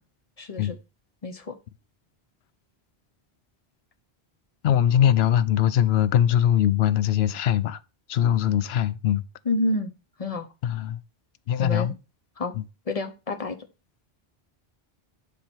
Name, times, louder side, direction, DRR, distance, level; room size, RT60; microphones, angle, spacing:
voice 1, 0.4-0.8 1.2-1.5 9.5-9.9 10.2-10.5 11.6-11.9 12.4-12.5 12.9-13.6, left 2 dB, 40° left, 0.9 m, -28 dB
voice 2, 4.6-7.8 8.1-9.2 10.6-11.0 11.5-11.9 12.5-12.6, left 10 dB, 80° left, 0.8 m, -21 dB
7.6 x 5.4 x 4.5 m
omnidirectional pair, 1.0 m